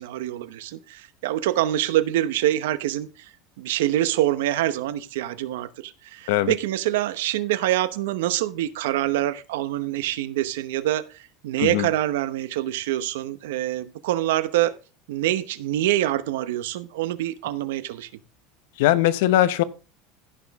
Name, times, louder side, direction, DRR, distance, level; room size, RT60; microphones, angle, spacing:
voice 1, 0.0-3.1 3.6-11.1 11.4-14.7 15.1-18.1, right 14 dB, 85° right, 0.9 m, -25 dB
voice 2, 18.8-19.6, left 14 dB, 80° left, 0.9 m, -20 dB
15.0 x 6.2 x 3.6 m
supercardioid pair, 135°, 0 cm